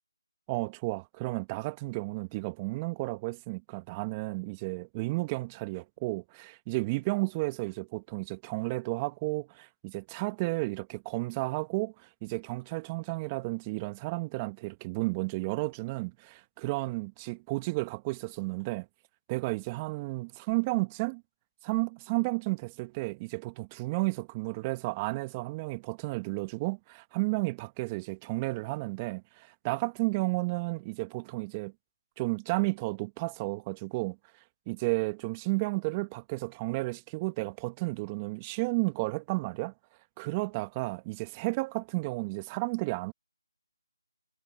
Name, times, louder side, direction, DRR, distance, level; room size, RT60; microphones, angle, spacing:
voice 1, 0.5-18.9 19.3-21.2 21.6-31.7 32.2-34.2 34.7-39.7 40.2-43.1, right 24 dB, 20° right, 1.6 m, -32 dB
figure-of-eight pair, 155°, 3 cm